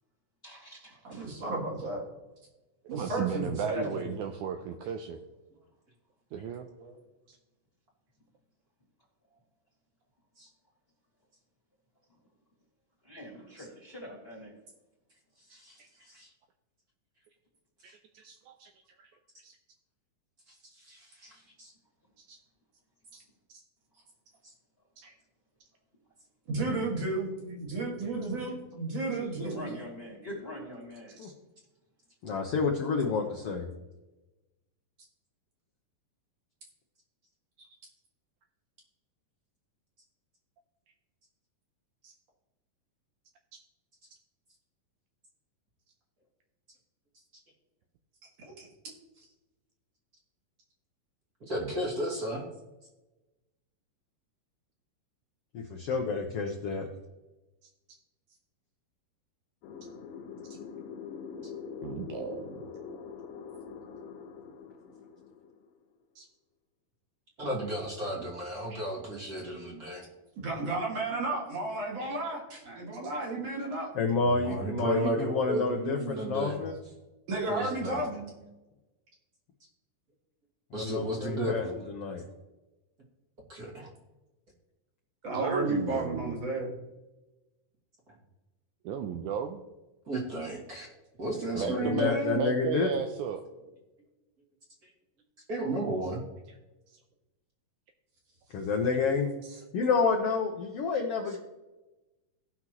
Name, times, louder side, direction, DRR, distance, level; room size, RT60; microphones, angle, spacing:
voice 1, 0.4-1.3 13.0-14.5 29.2-31.2, equal, 20° left, -3 dB, 2.1 m, -43 dB
voice 2, 1.0-2.1 2.9-4.1 6.8-7.0 26.5-29.8 48.6-48.7 49.2-49.3 68.7-68.8 70.4-73.9 77.3-78.3 85.2-86.7, right 2 dB, 50° right, -3 dB, 3.1 m, -33 dB
voice 3, 2.9-5.2 6.3-6.7 7.3-7.4 17.8-18.7 19.0-19.1 19.4-19.6 22.2-22.4 25.0-25.2 42.0-42.1 51.6-51.7 61.8-62.6 66.2-66.3 72.0-72.2 73.1-73.2 77.6-77.7 85.3-86.4 88.8-89.6 91.6-93.4 99.4-99.6, right 7 dB, 80° right, 6 dB, 1.8 m, -35 dB
voice 4, 15.5-16.3 20.5-21.7 51.4-52.4 67.4-70.0 74.2-76.6 77.5-78.0 80.7-81.7 83.5-83.9 85.9-86.0 90.1-90.9 91.2-92.4 95.5-96.2, right 1 dB, 30° right, -2 dB, 2.0 m, -34 dB
voice 5, 32.2-33.7 55.5-56.9 73.9-76.7 80.7-82.2 91.5-92.9 98.5-99.3 99.7-101.4, left 4 dB, 70° left, 2 dB, 1.4 m, -29 dB
sound 1, 59.6-65.8, left 6 dB, 90° left, 2.6 m, -43 dB
17.5 x 5.9 x 3.0 m, 1.1 s
omnidirectional pair, 3.9 m